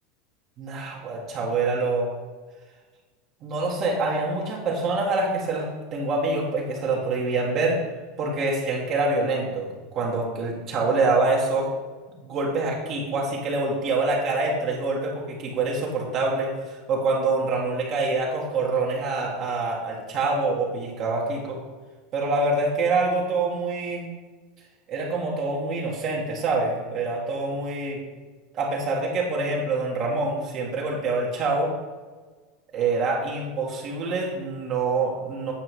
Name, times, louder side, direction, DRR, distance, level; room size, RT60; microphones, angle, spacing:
voice 1, 0.6-2.1 3.4-7.8 8.2-11.7 12.2-21.6 22.1-24.1 24.9-28.0 28.5-31.7 32.7-35.5, right 3 dB, 45° right, -3 dB, 1.9 m, -26 dB
8.8 x 4.7 x 4.8 m, 1.3 s
hypercardioid pair, 95°, 0 cm